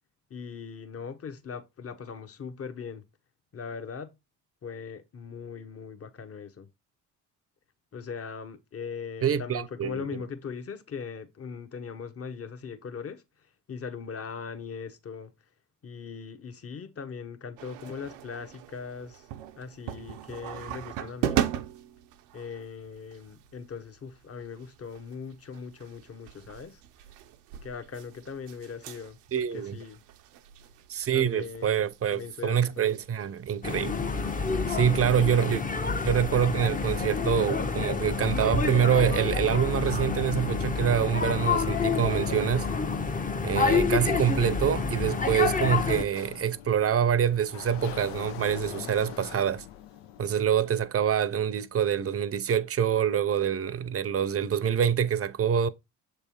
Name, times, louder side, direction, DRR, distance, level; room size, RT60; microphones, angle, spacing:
voice 1, 0.3-3.0 3.5-4.1 4.6-6.7 7.9-15.3 15.8-19.3 19.6-21.4 22.3-26.8 27.6-30.0 31.1-32.9 35.0-35.1, left 6 dB, 35° left, 1.1 m, -40 dB
voice 2, 9.2-10.0 29.3-29.8 30.9-33.9 34.7-35.6 36.0-42.7 43.4-49.6 50.2-55.7, right 8 dB, 35° right, 0.7 m, -26 dB
sound 1, 17.6-37.1, right 11 dB, 80° right, 0.7 m, -39 dB
sound 2, 33.6-46.0, left 5 dB, 20° left, 0.8 m, -28 dB
Sliding door, 45.8-50.8, left 10 dB, 80° left, 0.8 m, -43 dB
6.8 x 3.4 x 4.4 m
hypercardioid pair, 55°, 40 cm